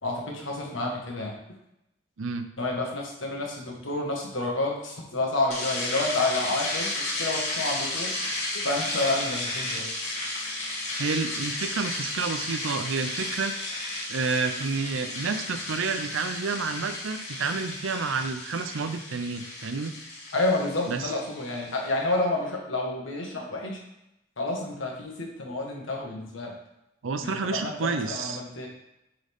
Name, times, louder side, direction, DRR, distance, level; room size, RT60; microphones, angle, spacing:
voice 1, 0.0-1.3 2.6-8.1 8.6-9.8 20.3-23.8 24.4-26.5 27.2-28.7, left 2 dB, 85° left, -1 dB, 1.6 m, -29 dB
sound 1, 5.5-21.8, left 2 dB, 35° left, 1.7 m, -33 dB
voice 2, 11.0-13.5 14.1-19.9 20.9-21.1 27.0-28.4, right 4 dB, 90° right, 8 dB, 0.6 m, -29 dB
7.7 x 3.9 x 3.5 m, 0.86 s
head